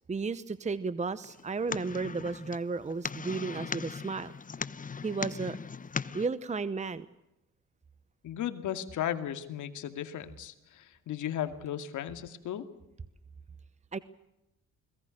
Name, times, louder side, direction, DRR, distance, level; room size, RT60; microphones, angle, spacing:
voice 1, 0.1-4.3 5.0-5.6 6.1-7.1 13.9-14.0, right 4 dB, 25° right, 15 dB, 0.9 m, -33 dB
sound 1, 1.2-6.3, left 5 dB, 25° left, 0.9 m, -39 dB
voice 2, 8.2-12.7, left 10 dB, 80° left, 9 dB, 2.4 m, -35 dB
29.5 x 21.5 x 6.6 m, 0.91 s
cardioid pair, 90°, 30 cm